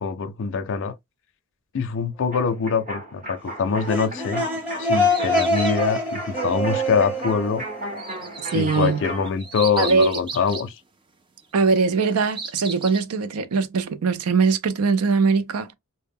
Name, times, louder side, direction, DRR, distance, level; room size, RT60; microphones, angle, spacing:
voice 1, 0.0-0.9 1.7-4.5 4.8-7.6 8.5-10.7, left 5 dB, 60° left, 0.4 m, -24 dB
sound 1, 2.3-9.3, right 1 dB, 40° right, 0.9 m, -35 dB
sound 2, 3.7-8.4, left 1 dB, 5° right, 0.9 m, -25 dB
sound 3, 4.4-6.0 8.0-10.7 11.8-13.0, right 4 dB, 25° right, 0.4 m, -35 dB
voice 2, 8.5-9.0 9.8-10.2 11.5-15.7, right 4 dB, 85° right, 0.4 m, -21 dB
2.1 x 2.1 x 3.4 m
head